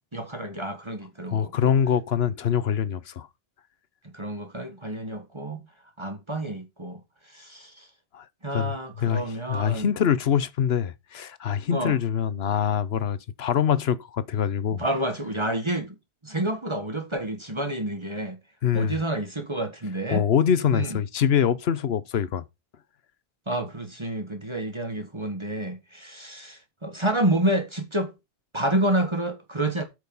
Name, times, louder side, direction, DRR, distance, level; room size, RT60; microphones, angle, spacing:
voice 1, 0.1-1.7 4.1-5.6 6.0-7.0 7.3-7.9 8.4-9.9 11.7-12.0 14.7-15.9 16.2-18.4 18.7-20.3 20.7-21.0 23.5-28.1 28.5-29.8, right 1 dB, 25° right, 1.5 m, -29 dB
voice 2, 1.3-3.3 8.1-8.2 8.5-8.7 9.0-14.8 18.6-19.0 20.1-22.4, left 8 dB, 70° left, 1.0 m, -24 dB
8.9 x 6.5 x 5.4 m
omnidirectional pair, 1.1 m